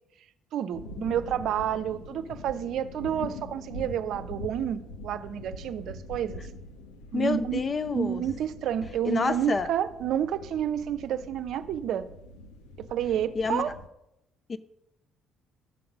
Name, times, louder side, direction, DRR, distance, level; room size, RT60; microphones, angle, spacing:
voice 1, 0.5-6.4 7.1-7.6 7.9-12.1 12.8-13.7, right 10 dB, 65° right, 0.6 m, -30 dB
sound 1, 0.7-13.9, left 2 dB, 90° left, 0.8 m, -43 dB
voice 2, 7.1-8.2 9.1-9.7 13.3-13.6 14.5-14.6, left 4 dB, 40° left, 0.7 m, -28 dB
14.0 x 5.9 x 5.1 m
hypercardioid pair, 60°, 0 cm